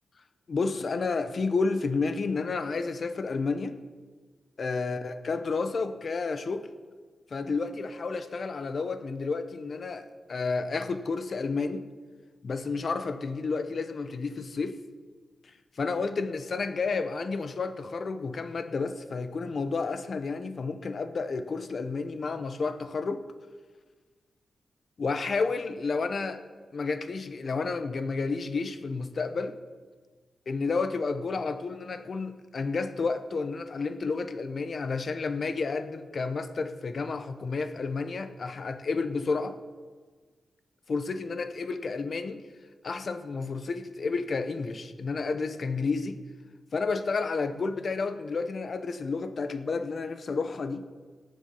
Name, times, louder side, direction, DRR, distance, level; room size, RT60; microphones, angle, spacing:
voice 1, 0.5-3.8 4.6-6.7 7.3-11.8 12.4-14.8 15.8-23.2 25.0-26.4 26.7-29.6 30.5-39.6 40.9-42.4 42.8-46.2 46.7-50.8, left 4 dB, 60° left, 10 dB, 1.0 m, -31 dB
18.0 x 7.3 x 5.5 m, 1.5 s
cardioid pair, 65°, 0 cm